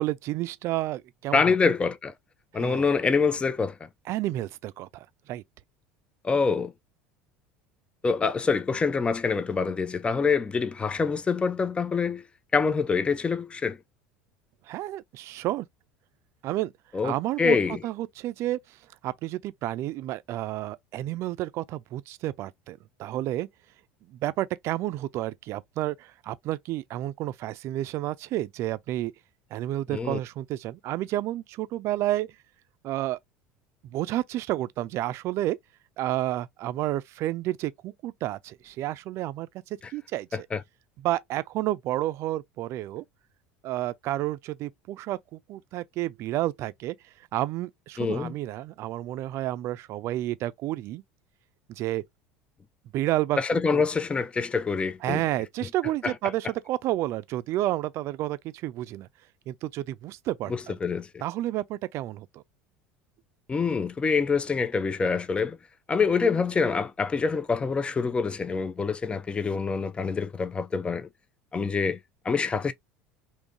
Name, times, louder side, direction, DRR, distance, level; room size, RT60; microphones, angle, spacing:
voice 1, 0.0-1.5 2.5-2.9 4.1-5.4 14.7-15.7 16.4-16.7 17.0-17.6 17.8-18.6 19.0-23.5 24.1-29.1 29.5-32.3 32.8-33.2 33.8-35.6 36.0-39.5 39.9-40.3 41.0-43.0 43.6-47.0 47.3-51.0 51.7-52.0 52.9-53.4 53.7-53.8 55.0-59.1 59.5-60.8 61.2-62.4, right 15 dB, 55° right, 0.4 m, -30 dB
voice 2, 1.3-2.1 2.5-3.8 6.2-6.7 8.0-12.2 12.5-13.8 16.9-17.8 29.9-30.2 40.3-40.6 48.0-48.3 53.4-55.2 56.0-56.1 60.5-61.2 63.5-65.6 65.9-71.1 71.5-72.0 72.2-72.7, left 5 dB, 20° left, 0.4 m, -26 dB
3.6 x 2.7 x 2.5 m
hypercardioid pair, 80°, 6 cm